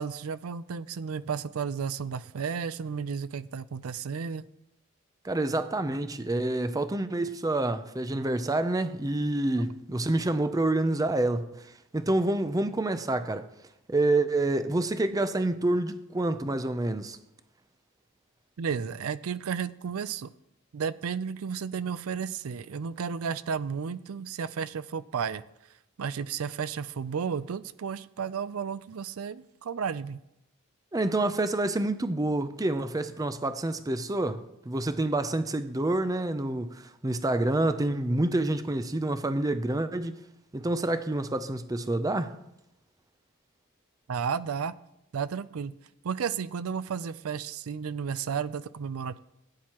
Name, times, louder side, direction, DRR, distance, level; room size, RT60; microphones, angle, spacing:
voice 1, 0.0-4.4 18.6-20.3 20.7-25.4 26.0-30.2 44.1-44.7 45.1-45.7 46.0-49.2, right 6 dB, 85° right, 0.5 m, -33 dB
voice 2, 5.2-13.5 13.9-17.2 30.9-40.2 40.5-42.3, right 2 dB, 15° right, 0.5 m, -28 dB
17.5 x 9.4 x 3.0 m
head